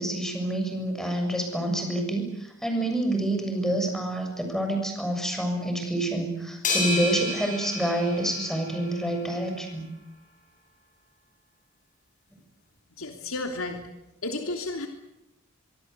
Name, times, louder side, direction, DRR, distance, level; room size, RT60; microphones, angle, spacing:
voice 1, 0.0-9.9, right 1 dB, ahead, 4 dB, 6.8 m, -28 dB
sound 1, 6.6-9.1, left 2 dB, 40° left, 7.5 m, -31 dB
voice 2, 13.0-13.9 14.2-14.9, left 2 dB, 80° left, 4 dB, 3.3 m, -32 dB
25.0 x 24.0 x 8.2 m, 0.86 s
head